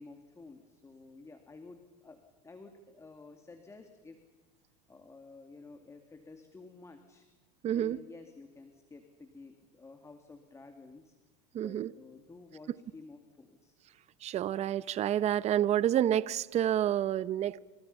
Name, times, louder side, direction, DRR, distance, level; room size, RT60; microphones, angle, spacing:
voice 1, 0.0-2.2 2.4-4.2 4.9-7.3 7.7-11.2 11.5-13.8, left 3 dB, 15° left, 2.5 m, -52 dB
voice 2, 7.6-8.0 11.5-11.9 14.2-17.6, right 11 dB, 35° right, 0.8 m, -29 dB
28.0 x 26.5 x 5.6 m
supercardioid pair, 115°, 19 cm